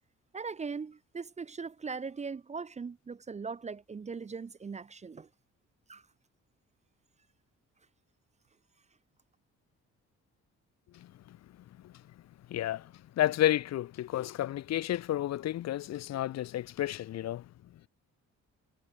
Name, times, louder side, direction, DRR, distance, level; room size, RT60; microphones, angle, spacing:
voice 1, 0.3-5.3 5.9-6.0, right 5 dB, 25° right, 0.5 m, -40 dB
voice 2, 12.5-12.8 13.2-17.4, left 13 dB, 60° left, 0.6 m, -31 dB
cardioid pair, 90°, 30 cm